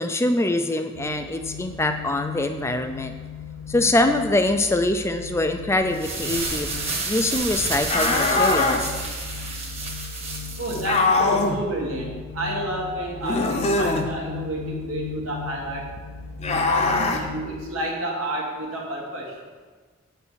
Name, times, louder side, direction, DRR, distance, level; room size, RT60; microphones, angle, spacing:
voice 1, 0.0-3.1 3.7-6.7 7.0-9.0, left 2 dB, 15° left, 7 dB, 0.3 m, -24 dB
sound 1, 0.9-17.7, left 6 dB, 90° left, 0.7 m, -38 dB
sound 2, 5.8-11.0, right 3 dB, 30° right, 1.2 m, -30 dB
sound 3, 7.9-8.8 10.8-11.6 13.2-14.1 16.4-17.2, left 3 dB, 30° left, 0.7 m, -21 dB
voice 2, 10.6-15.9 16.4-19.4, right 1 dB, 85° right, -1 dB, 1.9 m, -30 dB
7.8 x 4.6 x 6.8 m, 1.5 s
head